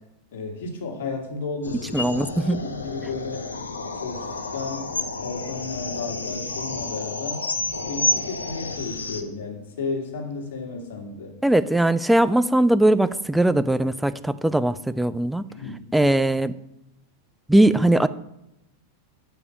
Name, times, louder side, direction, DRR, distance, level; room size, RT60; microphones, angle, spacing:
voice 1, 0.3-2.0 2.4-3.5 4.0-4.9 5.2-7.5 7.8-11.3 15.5-15.9, left 4 dB, 55° left, 1 dB, 1.8 m, -33 dB
sound 1, 1.6-9.2, left 2 dB, 75° left, 0.7 m, -30 dB
voice 2, 1.9-2.6 11.4-15.4 15.9-16.5 17.5-18.1, right 1 dB, 5° right, 13 dB, 0.3 m, -20 dB
6.8 x 4.9 x 6.9 m, 0.86 s
figure-of-eight pair, 90°, 0 cm